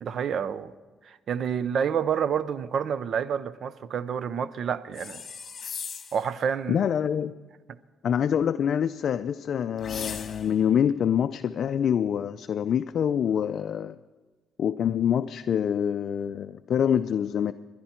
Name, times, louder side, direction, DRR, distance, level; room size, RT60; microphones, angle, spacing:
voice 1, 0.0-0.7 1.0-5.2 6.1-6.9, right 7 dB, 60° right, 0.6 m, -28 dB
sound 1, 4.9-6.3 9.8-10.6, left 6 dB, 45° left, 1.4 m, -38 dB
voice 2, 6.7-7.3 8.0-14.0 14.6-17.5, left 8 dB, 60° left, 0.4 m, -25 dB
21.0 x 11.0 x 4.4 m
cardioid pair, 90°, 0 cm